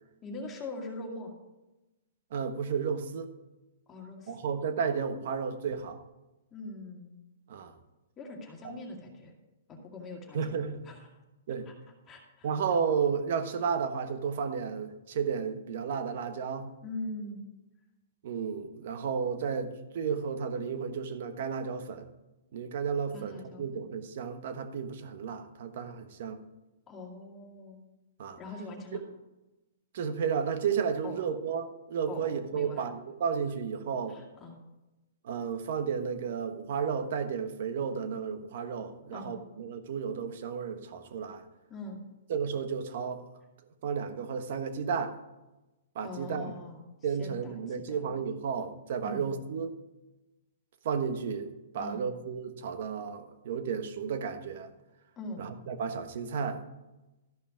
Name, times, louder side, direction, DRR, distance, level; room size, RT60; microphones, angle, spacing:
voice 1, 0.2-1.3 3.9-4.4 6.5-7.1 8.2-9.3 9.7-10.6 10.8-11.1 11.7-11.8 12.1-12.5 16.8-17.5 23.1-23.8 26.9-27.8 28.4-29.0 31.0-31.2 32.1-32.3 32.5-32.9 34.1-34.6 39.1-39.4 41.7-42.0 46.0-48.2 49.0-49.3 51.8-52.0 55.2-55.4, left 2 dB, 20° left, 0 dB, 2.2 m, -42 dB
voice 2, 2.3-3.3 4.3-6.0 7.5-7.7 10.3-10.8 11.5-11.7 12.4-16.7 18.2-22.0 22.5-26.4 28.2-28.4 28.9-29.0 29.9-34.2 35.2-41.4 42.3-43.2 43.8-45.2 45.9-46.5 47.0-49.7 50.8-51.5 51.7-54.7 55.4-56.6, right 6 dB, 60° right, 9 dB, 1.2 m, -32 dB
13.5 x 5.6 x 5.2 m, 1.0 s
hypercardioid pair, 145°, 0 cm